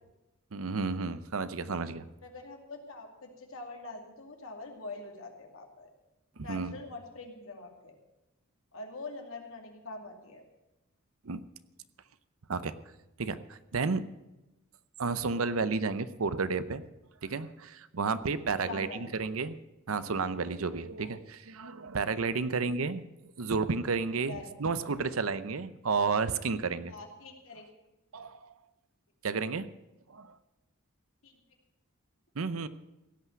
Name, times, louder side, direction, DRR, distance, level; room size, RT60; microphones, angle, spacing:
voice 1, 0.5-2.1 6.4-6.8 11.2-11.4 12.5-12.7 13.2-14.0 15.0-16.8 17.2-19.6 19.9-23.0 23.4-26.9 28.1-28.5 29.2-29.7 30.1-30.3 32.4-32.7, right 4 dB, 90° right, 14 dB, 0.7 m, -32 dB
voice 2, 2.2-5.9 6.4-8.0 8.7-10.4 18.6-19.2 24.3-24.5 26.9-27.7 31.2-31.4, left 3 dB, 85° left, 2 dB, 2.4 m, -44 dB
16.5 x 5.9 x 9.3 m, 0.96 s
head